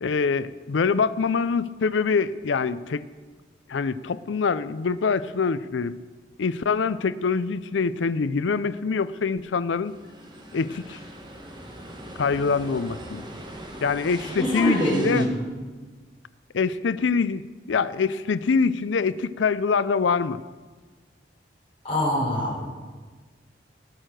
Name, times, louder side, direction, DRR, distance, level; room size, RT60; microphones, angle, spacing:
voice 1, 0.0-3.1 3.7-6.0 6.4-9.9 10.5-11.0 12.2-13.2 13.8-15.3 16.5-17.4 17.7-20.4, left 5 dB, 80° left, 16 dB, 0.5 m, -24 dB
sound 1, 9.8-15.3, right 1 dB, 25° right, 1.5 m, -40 dB
voice 2, 14.4-15.4 21.8-22.7, equal, 30° left, -6 dB, 5.0 m, -24 dB
19.5 x 6.6 x 6.2 m, 1.4 s
head